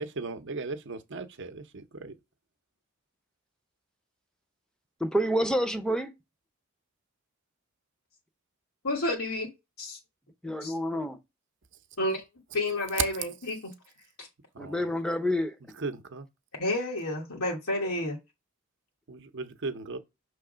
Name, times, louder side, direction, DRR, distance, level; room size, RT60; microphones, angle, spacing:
voice 1, 0.0-2.1 14.5-14.9 15.8-16.3 19.1-20.0, right 3 dB, 55° right, 0.7 m, -37 dB
voice 2, 5.0-6.1 10.4-11.2 14.6-15.5, equal, 5° left, 0.6 m, -28 dB
voice 3, 8.8-9.5 9.8-10.0 10.6-10.8 12.0-12.2 12.5-13.7 14.2-14.3 16.6-18.2, left 1 dB, 85° left, 1.3 m, -30 dB
6.2 x 3.3 x 5.0 m
head